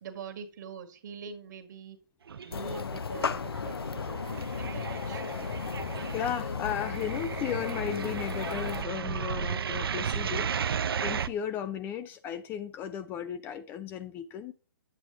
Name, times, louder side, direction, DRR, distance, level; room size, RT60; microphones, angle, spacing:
voice 1, 0.0-2.0 2.4-5.4, right 6 dB, 50° right, 1.6 m, -44 dB
sound 1, 2.3-3.0 3.2-11.3, right 7 dB, 75° right, 0.6 m, -34 dB
sound 2, 2.5-8.8, left 5 dB, 85° left, 0.8 m, -35 dB
voice 2, 6.1-14.5, left 9 dB, 15° left, 0.4 m, -35 dB
9.1 x 8.2 x 2.7 m
hypercardioid pair, 145°, 12 cm